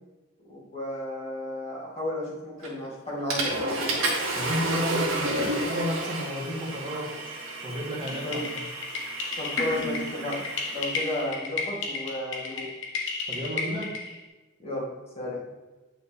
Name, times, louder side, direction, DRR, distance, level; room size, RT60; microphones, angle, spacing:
voice 1, 0.5-4.0 8.2-8.5 9.4-12.7 14.6-14.9 15.2-15.5, left 1 dB, 30° left, -6 dB, 2.3 m, -33 dB
Water / Toilet flush, 2.6-2.9 3.3-11.2, right 2 dB, 80° right, 1.8 m, -31 dB
voice 2, 4.4-7.1 7.6-8.4 13.3-14.0, left 1 dB, 25° right, -5 dB, 1.6 m, -31 dB
sound 1, 8.1-14.2, left 3 dB, 60° left, 1.3 m, -33 dB
9.3 x 4.8 x 3.4 m, 1.2 s
head